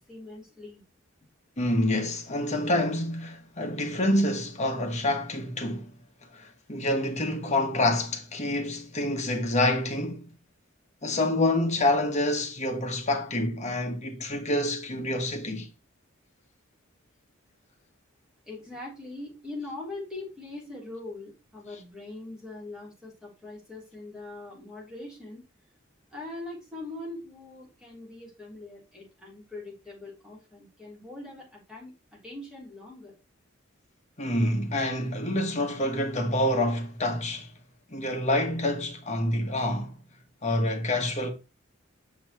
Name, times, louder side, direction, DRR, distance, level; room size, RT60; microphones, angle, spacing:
voice 1, 0.1-0.8 18.4-25.4 26.1-31.9 32.2-33.1, left 2 dB, 5° right, 3.2 m, -42 dB
voice 2, 1.6-5.9 6.3-10.3 11.0-15.7 34.2-37.5 37.9-39.9 40.4-41.3, left 1 dB, 35° left, 1.3 m, -27 dB
6.6 x 5.6 x 3.0 m
head